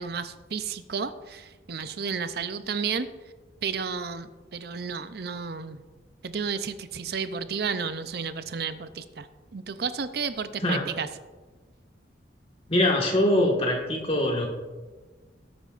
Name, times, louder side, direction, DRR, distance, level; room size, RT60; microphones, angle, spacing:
voice 1, 0.0-3.1 3.6-5.8 6.2-9.3 9.5-11.1, right 5 dB, 55° right, 11 dB, 0.5 m, -32 dB
voice 2, 12.7-14.5, left 1 dB, 30° left, 0 dB, 1.7 m, -23 dB
18.0 x 8.7 x 2.5 m, 1.3 s
head